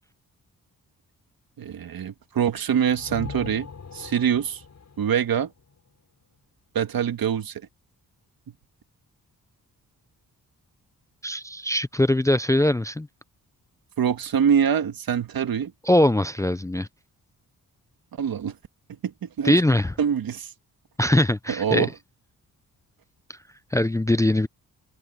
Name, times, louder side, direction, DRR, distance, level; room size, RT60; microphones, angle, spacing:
voice 1, 1.6-3.7 3.9-4.6 5.0-5.5 6.7-7.6 14.0-15.7 18.2-18.6 19.0-19.6 20.0-20.5 21.5-21.9, right 8 dB, 70° right, 2.0 m, -24 dB
sound 1, 2.8-6.6, left 5 dB, 50° left, 5.6 m, -41 dB
voice 2, 11.2-13.1 15.8-16.9 19.4-19.9 21.0-21.9 23.3-23.4 23.7-24.5, left 1 dB, 10° left, 0.5 m, -21 dB
cardioid pair, 80°, 36 cm